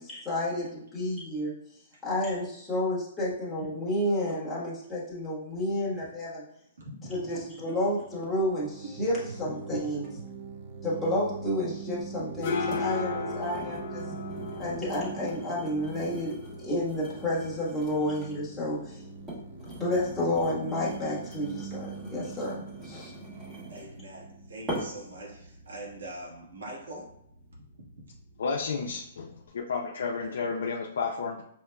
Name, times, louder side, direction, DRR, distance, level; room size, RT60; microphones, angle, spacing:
voice 1, 0.0-1.5 2.0-6.4 7.1-10.1 10.8-14.0 14.6-19.0 19.8-23.1, left 1 dB, 10° left, -7 dB, 1.3 m, -30 dB
voice 2, 6.8-7.3 9.7-9.8 23.7-27.1 27.5-28.2, right 1 dB, 85° right, -3 dB, 1.5 m, -43 dB
sound 1, 7.9-25.5, right 5 dB, 40° right, 0.5 m, -43 dB
sound 2, 12.0-29.5, left 5 dB, 45° left, 0.7 m, -41 dB
sound 3, 12.7-12.9 13.3-18.4 19.0-24.0 24.7-25.1 25.7-25.9, right 1 dB, 15° right, 1.5 m, -43 dB
voice 3, 28.4-29.3 29.5-31.4, left 5 dB, 75° left, -1 dB, 0.5 m, -31 dB
5.6 x 2.9 x 2.2 m, 0.73 s
hypercardioid pair, 160°, 0 cm